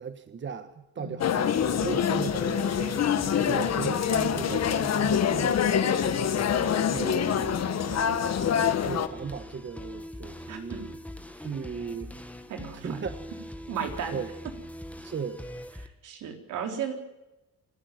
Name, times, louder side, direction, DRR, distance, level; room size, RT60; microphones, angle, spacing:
voice 1, 0.0-3.0 3.5-7.8 8.8-11.0 11.3-12.1 12.7-13.4 14.1-14.3 15.0-15.5, right 6 dB, 40° right, 10 dB, 1.4 m, -37 dB
sound 1, 1.2-9.1, left 8 dB, 60° left, 1.6 m, -25 dB
sound 2, 1.5-15.9, equal, 5° left, 2.0 m, -42 dB
voice 2, 7.9-8.2 10.5-10.8 12.5-13.0 13.7-14.2 16.0-16.9, right 7 dB, 85° right, 4 dB, 4.0 m, -35 dB
27.5 x 11.5 x 9.5 m, 0.98 s
cardioid pair, 90°, 30 cm